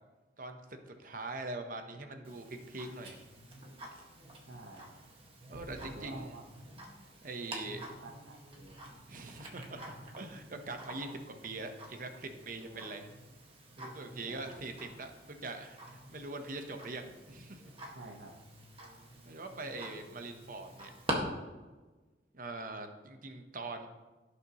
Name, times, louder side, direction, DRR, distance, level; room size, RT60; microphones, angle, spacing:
voice 1, 0.4-3.2 5.5-6.3 7.2-7.8 9.1-13.1 13.8-17.6 19.2-20.9 22.3-23.9, right 2 dB, 50° right, 6 dB, 1.0 m, -43 dB
Tick-tock, 2.2-21.1, right 1 dB, 30° right, 1.8 m, -47 dB
voice 2, 4.5-4.9 5.8-6.4 7.6-8.7 12.7-12.9 14.3-14.4 17.9-18.3, right 2 dB, 85° right, -1 dB, 1.3 m, -49 dB
17.0 x 6.7 x 3.1 m, 1.2 s
head